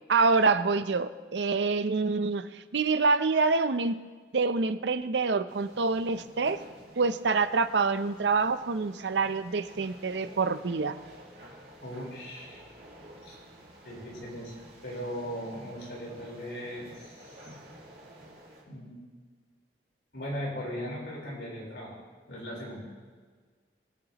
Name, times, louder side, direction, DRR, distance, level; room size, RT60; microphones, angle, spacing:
voice 1, 0.1-2.5 2.7-4.0 4.3-6.6 7.0-11.0, right 4 dB, 80° right, 12 dB, 0.6 m, -26 dB
sound 1, 5.5-18.6, right 1 dB, 65° right, 4.4 m, -51 dB
voice 2, 11.8-12.6 13.2-13.4 13.8-17.4 18.6-19.0 20.1-22.0 22.3-22.9, equal, 85° left, -4 dB, 4.2 m, -38 dB
22.5 x 9.1 x 3.0 m, 1.5 s
head